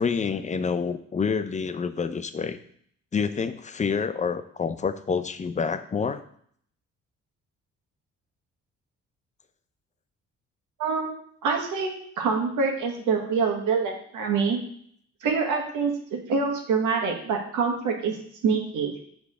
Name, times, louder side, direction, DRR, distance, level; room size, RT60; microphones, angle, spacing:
voice 1, 0.0-2.6 3.1-6.2, left 5 dB, 25° left, 11 dB, 0.5 m, -27 dB
voice 2, 10.8-11.1 11.4-11.9 12.2-14.6 15.2-18.2 18.4-18.9, right 5 dB, 80° right, 2 dB, 1.4 m, -25 dB
6.6 x 3.6 x 4.9 m, 0.63 s
cardioid pair, 90°, 30 cm